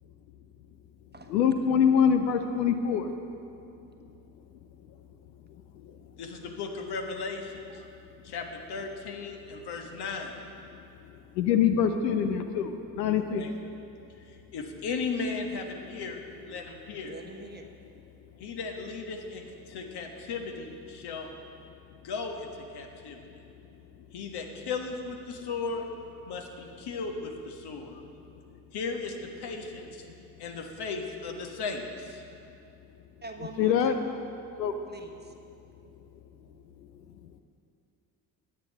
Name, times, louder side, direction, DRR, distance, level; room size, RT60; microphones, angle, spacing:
voice 1, 1.3-3.1 5.8-5.9 11.3-13.5 33.6-33.9 34.6-34.7, left 7 dB, 80° left, 7 dB, 0.6 m, -24 dB
voice 2, 6.2-7.8 8.2-10.4 13.3-13.5 14.2-17.1 18.4-21.3 22.0-23.2 24.1-25.8 26.3-28.0 28.7-30.1 30.4-32.2, left 4 dB, 50° left, 3 dB, 1.4 m, -36 dB
voice 3, 17.0-17.7 33.2-33.9 34.9-35.3, right 3 dB, 20° right, 4 dB, 1.2 m, -43 dB
11.0 x 9.0 x 5.3 m, 2.6 s
figure-of-eight pair, 45°, 49 cm